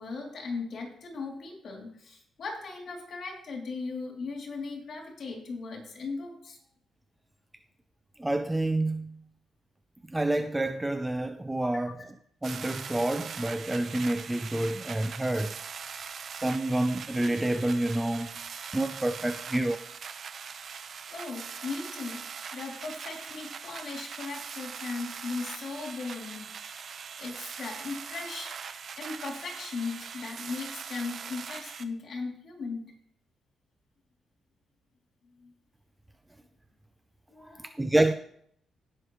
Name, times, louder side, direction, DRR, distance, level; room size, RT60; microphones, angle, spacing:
voice 1, 0.0-6.6 11.6-11.9 21.1-22.3 22.5-28.6 29.0-32.9 35.4-35.5 37.3-37.7, left 4 dB, 50° left, 3.0 m, -38 dB
voice 2, 8.2-9.2 10.1-12.0 12.4-15.5 15.9-18.4 18.7-19.8 37.8-38.1, right 1 dB, 10° right, 0.5 m, -28 dB
sound 1, 12.4-31.8, right 6 dB, 45° right, 0.7 m, -41 dB
17.0 x 6.4 x 3.2 m
cardioid pair, 135°, 0 cm